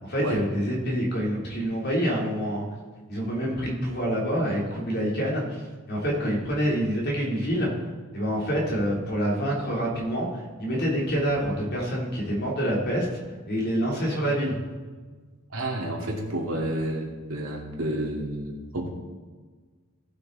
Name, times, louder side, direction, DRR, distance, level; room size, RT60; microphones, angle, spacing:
voice 1, 0.0-2.7 3.1-7.7 8.1-13.1 13.5-14.6, equal, 50° left, -3 dB, 3.4 m, -27 dB
voice 2, 15.5-18.9, right 1 dB, 80° right, -1 dB, 2.6 m, -30 dB
18.0 x 6.5 x 4.1 m, 1.4 s
head